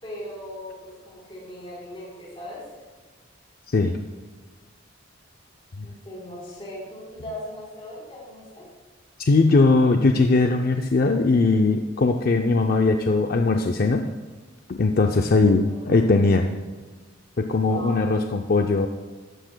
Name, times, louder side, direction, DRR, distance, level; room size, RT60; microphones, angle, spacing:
voice 1, 0.0-2.7 5.8-8.7 15.6-15.8 17.7-18.1, left 1 dB, 30° left, -6 dB, 3.6 m, -38 dB
voice 2, 3.7-4.0 5.8-5.9 9.3-14.1 14.7-16.5 17.4-18.9, left 3 dB, 50° left, 5 dB, 0.5 m, -20 dB
13.5 x 11.5 x 2.2 m, 1.3 s
head